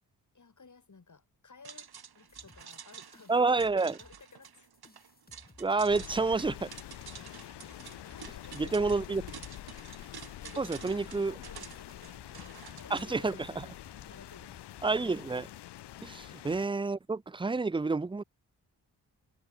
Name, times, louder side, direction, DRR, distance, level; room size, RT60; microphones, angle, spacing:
voice 1, 0.3-3.4 3.9-4.7 7.9-9.5 10.4-13.7 14.1-14.6 16.0-16.2, left 4 dB, 45° left, 5.9 m, -55 dB
sound 1, 1.6-13.0, right 7 dB, 65° right, 2.5 m, -50 dB
sound 2, 2.3-16.0, left 2 dB, 20° left, 3.9 m, -60 dB
voice 2, 3.3-4.0 5.6-6.7 8.5-9.2 10.6-11.3 12.9-13.7 14.8-15.5 16.0-18.2, right 3 dB, 10° right, 0.6 m, -29 dB
Rain, 5.9-16.6, left 13 dB, 75° left, 0.7 m, -46 dB
supercardioid pair, 50°, 41 cm